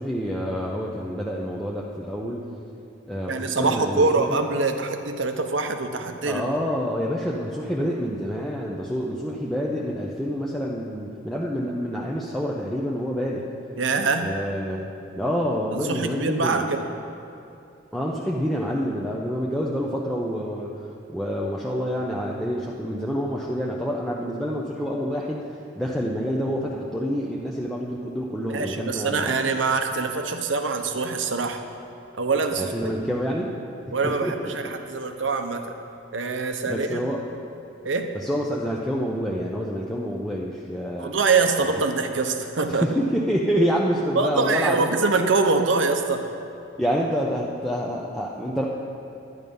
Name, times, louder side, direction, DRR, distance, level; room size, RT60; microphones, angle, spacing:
voice 1, 0.0-2.4 3.1-4.4 6.3-13.5 14.2-16.6 17.9-20.7 21.1-25.5 25.8-29.3 32.6-33.6 33.9-34.7 36.6-37.2 38.1-41.1 41.8-41.9 42.6-44.9 46.8-48.6, equal, ahead, -4 dB, 0.7 m, -27 dB
voice 2, 3.3-6.4 13.8-14.3 15.9-16.8 28.5-31.6 32.2-32.7 33.9-35.6 36.1-37.0 37.8-38.1 41.0-42.8 44.1-46.2, right 4 dB, 80° right, 6 dB, 0.9 m, -24 dB
11.0 x 10.0 x 5.4 m, 2.6 s
head